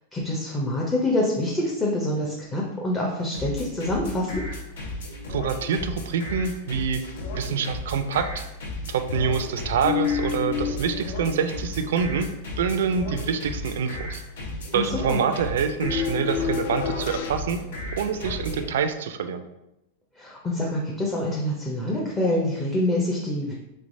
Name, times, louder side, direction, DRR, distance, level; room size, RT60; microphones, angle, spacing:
voice 1, 0.1-4.4 14.7-15.2 20.2-23.5, left 1 dB, 15° left, -4 dB, 0.6 m, -26 dB
sound 1, 3.3-18.7, left 1 dB, 80° left, 0.9 m, -34 dB
voice 2, 5.3-7.0 7.4-8.4 8.9-12.3 12.6-14.2 14.7-17.6 17.9-19.4, right 6 dB, 80° right, 9 dB, 0.3 m, -26 dB
sound 2, 7.0-7.7 7.9-8.0 9.1-12.2 15.8-17.3, left 8 dB, 65° left, 0.3 m, -30 dB
3.6 x 3.2 x 2.6 m, 0.89 s
supercardioid pair, 145°, 0 cm